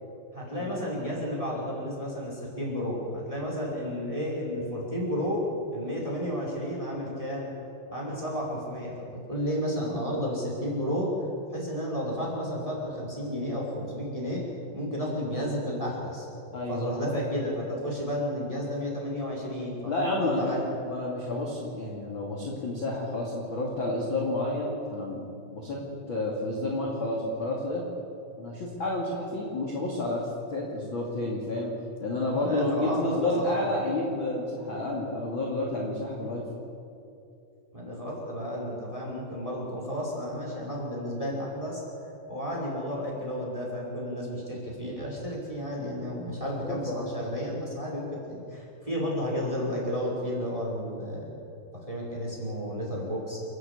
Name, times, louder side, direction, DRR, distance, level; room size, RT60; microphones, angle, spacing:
voice 1, 0.3-5.4 5.7-7.5 7.9-8.9 9.3-11.1 11.5-14.5 14.7-16.3 16.7-20.6 32.3-33.6 37.7-51.3 51.9-53.4, equal, 10° right, -3 dB, 4.9 m, -32 dB
voice 2, 16.5-17.0 19.9-20.6 20.8-25.8 26.1-27.8 28.4-31.7 32.0-36.4 46.6-47.1, left 2 dB, 35° left, -3 dB, 2.7 m, -30 dB
29.5 x 11.5 x 8.4 m, 2.7 s
omnidirectional pair, 4.6 m